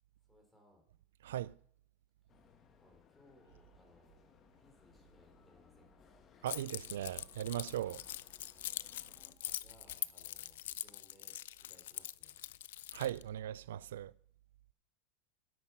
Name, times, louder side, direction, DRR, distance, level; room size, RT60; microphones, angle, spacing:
voice 1, 0.3-0.8 2.8-6.1 9.4-12.4, left 1 dB, 5° left, 3.4 m, -66 dB
voice 2, 1.2-1.5 6.4-8.0 12.9-14.1, right 12 dB, 85° right, 0.3 m, -38 dB
sound 1, 2.3-9.3, left 6 dB, 25° left, 1.2 m, -64 dB
Keys jangling, 6.5-13.2, left 13 dB, 80° left, 0.3 m, -44 dB
10.5 x 8.2 x 5.8 m
supercardioid pair, 150°, 0 cm